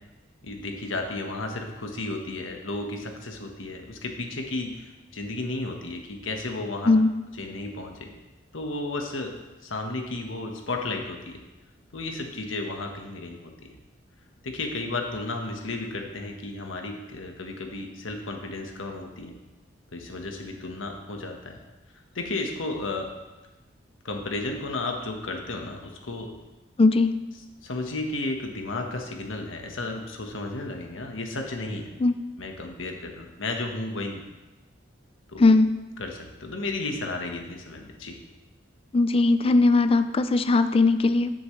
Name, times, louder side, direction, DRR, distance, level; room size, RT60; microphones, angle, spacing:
voice 1, 0.4-4.8 5.1-6.9 7.4-8.1 8.5-9.4 9.6-11.4 11.9-13.5 14.4-19.3 19.9-21.6 22.1-23.1 24.0-26.3 27.6-31.9 32.4-34.2 35.3-35.4 36.0-38.2, left 2 dB, 85° left, 3 dB, 1.3 m, -33 dB
voice 2, 26.8-27.2 32.0-32.1 35.4-35.7 38.9-41.3, left 3 dB, 30° left, 10 dB, 0.4 m, -19 dB
13.5 x 7.1 x 3.2 m, 1.1 s
head